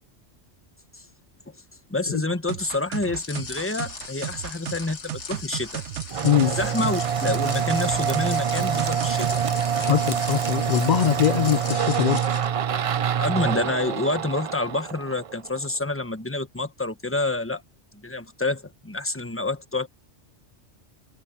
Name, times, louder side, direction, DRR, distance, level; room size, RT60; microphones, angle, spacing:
voice 1, 1.9-5.8 6.4-9.4 13.2-17.6 17.9-19.9, left 2 dB, 10° left, 1.1 m, -28 dB
sound 1, 2.5-9.4, right 14 dB, 80° right, 0.9 m, -35 dB
sound 2, 3.2-12.5, left 5 dB, 80° left, 1.9 m, -38 dB
sound 3, 6.1-15.7, right 8 dB, 60° right, 0.3 m, -26 dB
voice 2, 6.2-6.6 9.8-12.3, left 9 dB, 50° left, 0.6 m, -22 dB
omnidirectional pair, 1.2 m